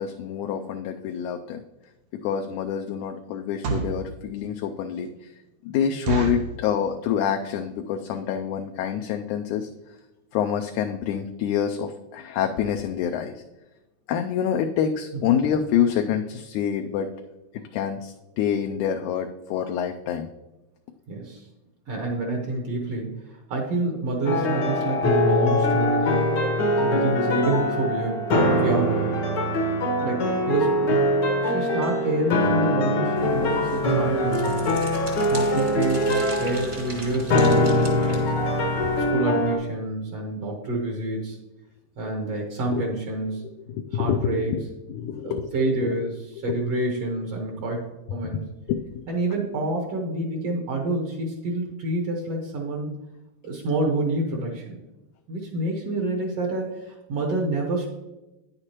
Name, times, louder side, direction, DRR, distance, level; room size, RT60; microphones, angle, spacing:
voice 1, 0.0-1.6 2.2-5.1 5.7-9.7 10.3-13.4 14.1-17.1 17.5-20.3 42.7-42.9 43.7-44.6 44.9-46.1 46.5-46.6 48.7-49.0, left 8 dB, 80° left, 5 dB, 1.9 m, -27 dB
sound 1, 1.8-2.0 2.5-2.7 3.4-4.0 4.6-4.7 5.0-5.1 5.5-5.6 6.1-6.6 7.2-7.4 7.7-7.8 8.0-8.3 8.8-8.9 9.2-9.3 9.7-9.8 10.0-10.1, right 5 dB, 80° right, 2.4 m, -29 dB
voice 2, 21.1-21.5 21.9-26.3 26.8-29.1 29.8-31.1 31.4-34.8 35.3-38.2 39.1-41.4 42.0-43.4 43.9-44.6 45.2-47.8 48.1-48.4 49.1-52.9 53.4-54.8 55.3-57.9, right 2 dB, 60° right, -1 dB, 1.9 m, -28 dB
sound 2, 24.2-39.5, left 1 dB, 60° left, 1.2 m, -23 dB
sound 3, 33.2-39.1, right 1 dB, 35° right, 1.1 m, -39 dB
9.7 x 8.1 x 2.9 m, 1.0 s
omnidirectional pair, 3.5 m